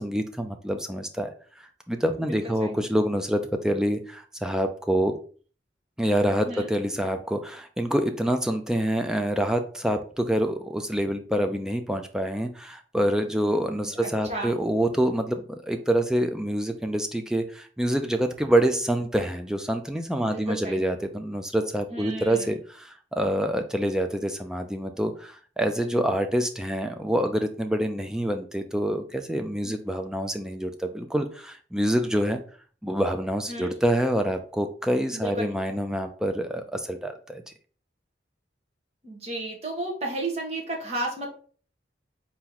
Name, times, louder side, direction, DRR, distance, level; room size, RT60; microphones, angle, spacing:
voice 1, 0.0-1.3 1.9-5.1 6.0-32.4 32.8-37.4, right 1 dB, 5° right, 5 dB, 0.4 m, -26 dB
voice 2, 2.2-2.8 6.4-6.7 13.4-13.6 13.9-14.6 20.2-20.8 21.9-22.6 29.6-29.8 33.5-33.7 35.1-35.5 39.0-41.3, right 2 dB, 35° right, -1 dB, 1.3 m, -33 dB
4.2 x 3.0 x 3.8 m, 0.42 s
head